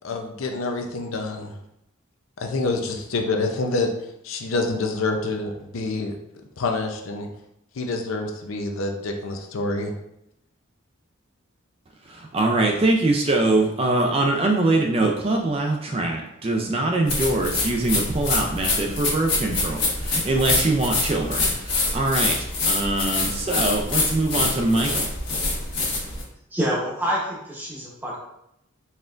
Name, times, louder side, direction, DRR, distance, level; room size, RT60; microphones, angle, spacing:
voice 1, 0.0-1.5 2.4-3.9 4.2-6.1 6.6-7.3 7.7-9.9, left 3 dB, 80° left, 4 dB, 0.5 m, -27 dB
voice 2, 12.3-25.1, right 2 dB, 30° right, 1 dB, 0.4 m, -23 dB
sound 1, 17.1-26.2, left 3 dB, 55° left, 1.4 m, -25 dB
voice 3, 26.5-28.2, equal, 10° right, -5 dB, 0.9 m, -26 dB
4.2 x 3.4 x 2.5 m, 0.81 s
head